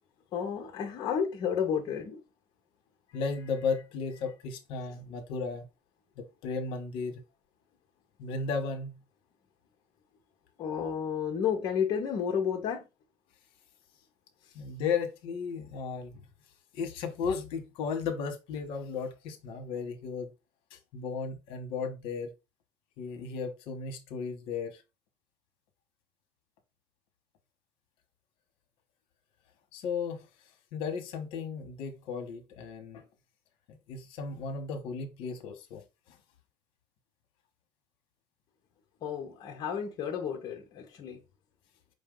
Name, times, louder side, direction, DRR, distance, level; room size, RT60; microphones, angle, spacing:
voice 1, 0.3-2.2 10.6-12.8 39.0-41.2, left 7 dB, 45° left, 0.9 m, -31 dB
voice 2, 3.1-5.6 6.2-7.2 8.2-9.0 14.5-16.2 16.7-20.3 20.7-22.3 23.0-24.8 29.7-30.3 30.7-33.1 33.7-36.2, left 5 dB, 65° left, 1.2 m, -35 dB
5.3 x 2.6 x 3.7 m
cardioid pair, 140°, 10 cm